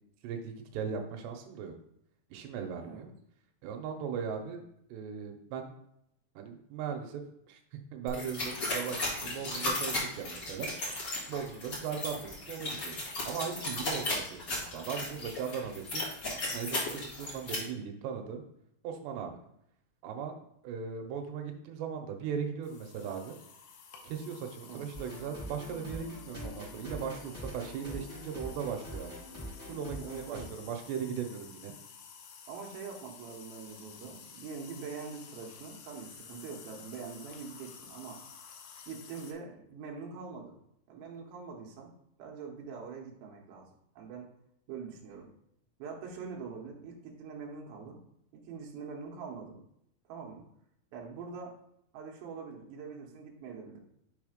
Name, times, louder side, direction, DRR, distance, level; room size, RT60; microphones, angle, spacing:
voice 1, 0.2-1.7 2.3-3.1 3.6-4.6 4.9-5.7 6.4-7.2 7.5-10.7 11.3-13.0 13.2-16.0 16.5-18.4 18.8-19.4 20.0-20.3 20.6-23.4 24.0-29.2 29.7-31.7, right 7 dB, 90° right, 4 dB, 2.9 m, -38 dB
sound 1, 8.1-17.5, left 2 dB, 40° left, 1.6 m, -35 dB
sound 2, 22.6-39.3, left 6 dB, 75° left, 2.3 m, -52 dB
sound 3, 24.9-30.4, equal, 10° right, 1.6 m, -44 dB
voice 2, 30.0-30.5 32.5-38.2 38.9-40.5 40.9-41.9 42.2-43.7 44.0-44.3 44.7-45.3 45.8-48.0 48.3-49.6 50.1-50.4 50.9-51.6 51.9-53.8, right 5 dB, 70° right, -1 dB, 2.8 m, -44 dB
6.5 x 3.4 x 5.0 m, 0.76 s
omnidirectional pair, 4.7 m